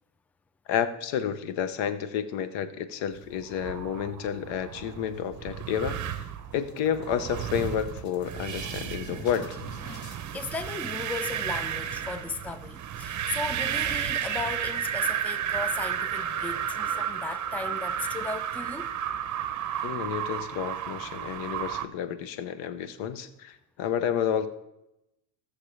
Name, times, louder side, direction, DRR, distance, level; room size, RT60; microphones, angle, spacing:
voice 1, 0.7-6.3 6.5-9.5 19.8-24.5, left 8 dB, 75° left, 1.1 m, -30 dB
sound 1, 3.3-21.8, right 9 dB, 40° right, 0.8 m, -33 dB
sound 2, 4.9-5.6 6.0-6.1 6.4-10.2, left 2 dB, 55° left, 2.9 m, -47 dB
voice 2, 10.3-18.9 19.8-20.0, left 4 dB, 5° left, 0.4 m, -36 dB
16.5 x 6.6 x 3.3 m
supercardioid pair, 105°, 46 cm